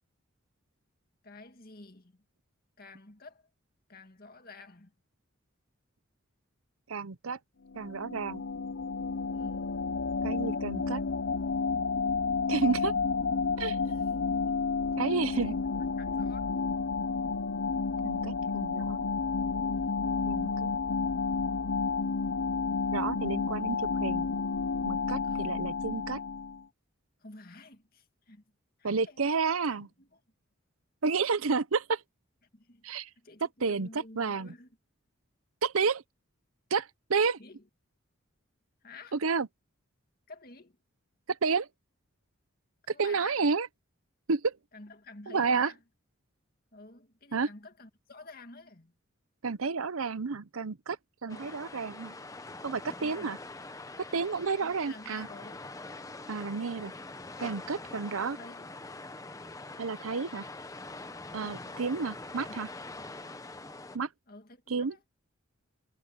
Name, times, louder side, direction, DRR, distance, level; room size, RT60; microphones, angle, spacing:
voice 1, 1.2-2.2 2.8-3.5 3.9-5.0 9.3-9.8 13.9-14.7 15.0-15.6 15.9-16.6 19.8-20.3 25.2-25.7 27.2-28.4 28.8-30.2 32.5-34.7 37.4-37.7 38.8-39.2 40.3-40.8 42.8-43.5 44.7-45.8 46.7-48.9 51.3-51.6 53.0-53.3 54.4-55.7 57.8-58.7 61.3-61.7 62.5-62.7 64.3-65.0, left 2 dB, 45° left, 2.2 m, -51 dB
voice 2, 6.9-7.4 7.7-8.4 10.2-11.0 12.5-12.9 13.6-13.8 15.0-15.5 18.0-19.0 20.3-20.7 22.9-24.3 24.9-26.2 28.8-29.9 31.0-32.0 32.8-33.1 33.6-33.9 34.2-34.5 35.6-36.0 36.7-37.4 39.1-39.5 41.4-41.7 43.0-43.7 44.3-44.5 45.3-45.7 47.3-47.5 49.4-51.0 51.2-52.1 52.6-53.4 54.1-55.3 56.3-56.9 57.4-58.4 59.8-60.5 61.3-62.7 63.9-64.1 64.7-64.9, right 5 dB, 90° right, 0.8 m, -30 dB
sound 1, 7.7-26.6, left 4 dB, 75° left, 0.7 m, -31 dB
sound 2, 51.3-64.0, left 2 dB, 15° left, 1.0 m, -44 dB
head